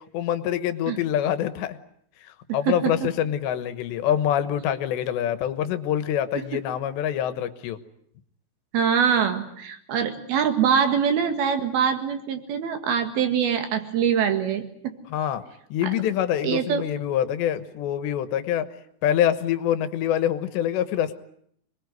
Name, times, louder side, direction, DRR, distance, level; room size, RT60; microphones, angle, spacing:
voice 1, 0.1-1.8 2.5-7.8 15.1-15.4 15.7-18.7 19.0-21.1, left 10 dB, 80° left, 12 dB, 3.4 m, -25 dB
voice 2, 2.7-3.1 6.4-6.5 8.7-15.0 15.8-15.9 16.4-16.8, right 7 dB, 65° right, 7 dB, 3.6 m, -24 dB
26.5 x 21.0 x 9.5 m, 0.68 s
omnidirectional pair, 5.0 m